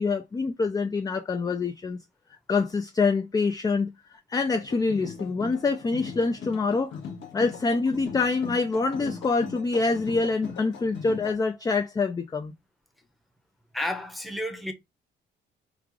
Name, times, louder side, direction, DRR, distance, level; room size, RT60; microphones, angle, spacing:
voice 1, 0.0-2.0 2.5-7.0 7.3-12.5, left 4 dB, 20° left, 0.4 m, -26 dB
sound 1, 4.5-11.3, left 6 dB, 70° left, 1.1 m, -40 dB
voice 2, 13.7-14.7, left 1 dB, ahead, 0.8 m, -31 dB
3.2 x 2.4 x 3.6 m
cardioid pair, 90°, 20 cm